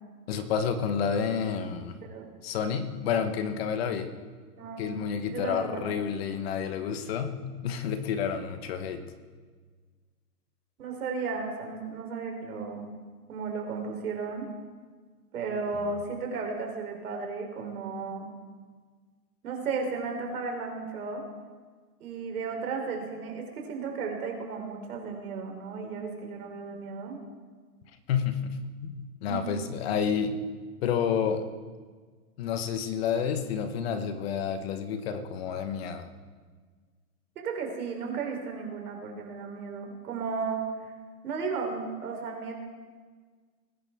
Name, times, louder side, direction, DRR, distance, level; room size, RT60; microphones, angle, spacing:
voice 1, 0.3-2.0 2.4-4.1 4.8-9.0 28.1-30.4 30.8-31.4 32.4-36.1, left 7 dB, 40° left, 8 dB, 1.2 m, -30 dB
voice 2, 4.6-4.9 5.3-6.1 10.8-12.9 13.3-14.5 15.3-18.3 19.4-21.2 22.0-27.2 29.3-29.5 37.4-40.6 41.2-42.5, right 4 dB, 65° right, 2 dB, 3.7 m, -34 dB
20.5 x 10.5 x 3.6 m, 1.5 s
hypercardioid pair, 150°, 47 cm